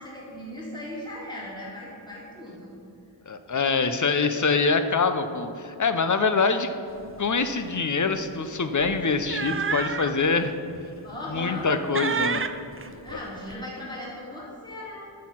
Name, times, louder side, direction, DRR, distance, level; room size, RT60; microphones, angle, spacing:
voice 1, 0.0-2.7 11.0-11.7 12.9-15.1, left 1 dB, 10° left, -6 dB, 2.0 m, -38 dB
voice 2, 3.3-6.7 7.2-10.5 11.3-12.4, left 4 dB, 40° left, 9 dB, 0.6 m, -24 dB
sound 1, 7.1-7.2 7.5-7.7 8.8-10.2 10.7-10.8 11.3-11.7 11.9-13.5, right 5 dB, 30° right, 0.4 m, -30 dB
6.4 x 6.3 x 5.7 m, 2.7 s
wide cardioid pair, 50°, 48 cm